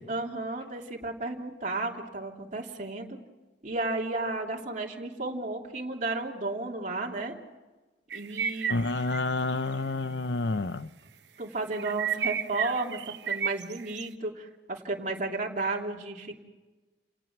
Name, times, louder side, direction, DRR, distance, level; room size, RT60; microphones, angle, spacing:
voice 1, 0.1-3.2 3.6-7.3 8.1-8.7 11.4-13.0 13.3-16.4, right 2 dB, 45° right, 3.0 m, -33 dB
sound 1, 8.1-9.2 9.5-9.7 10.1-10.2 11.7-14.0, right 8 dB, 65° right, 1.0 m, -32 dB
voice 2, 8.7-10.9, left 2 dB, 65° left, 0.7 m, -29 dB
29.5 x 18.5 x 6.0 m
head